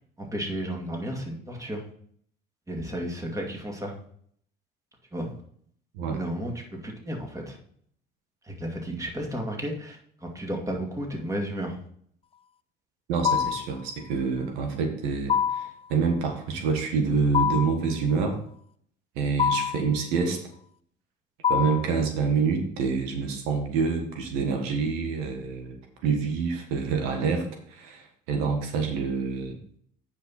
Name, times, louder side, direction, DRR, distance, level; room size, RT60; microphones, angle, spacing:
voice 1, 0.2-1.8 2.7-3.9 5.1-5.3 6.1-7.6 8.4-11.8, equal, 15° right, 1 dB, 2.5 m, -33 dB
voice 2, 13.1-18.4 19.1-20.4 21.5-29.5, right 5 dB, 90° right, 4 dB, 1.6 m, -27 dB
sound 1, 13.2-13.7 15.3-15.8 17.3-17.8 19.4-19.9 21.4-21.9, left 8 dB, 25° left, 0.4 m, -24 dB
9.2 x 5.6 x 4.2 m, 0.62 s
supercardioid pair, 90°, 21 cm